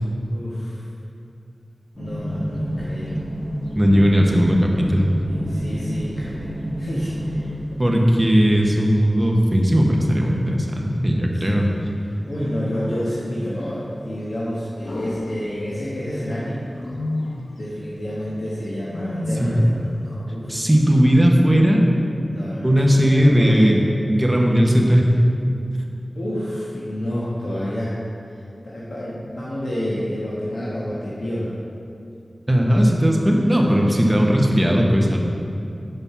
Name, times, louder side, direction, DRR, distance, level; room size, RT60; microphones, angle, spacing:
voice 1, 0.3-0.8 2.0-3.2 5.3-7.5 8.4-8.5 11.3-11.7 12.0-16.5 17.5-20.8 22.2-22.7 23.0-23.8 26.1-28.0 28.6-31.5 33.3-33.8, equal, 90° left, -8 dB, 1.2 m, -29 dB
sound 1, 1.9-7.5, equal, 10° left, 1.4 m, -29 dB
Wild animals, 2.5-2.8 4.1-4.8 7.1-8.0 9.8-10.9 12.4-13.3 14.8-16.0 16.7-17.6 18.9-19.9, left 1 dB, 70° left, 0.9 m, -32 dB
voice 2, 3.7-5.1 7.8-11.7 19.4-19.6 20.5-21.9 22.6-23.8 24.1-25.1 32.5-35.2, equal, 15° right, -1 dB, 1.1 m, -17 dB
7.1 x 5.5 x 5.6 m, 2.6 s
wide cardioid pair, 60°, 0 cm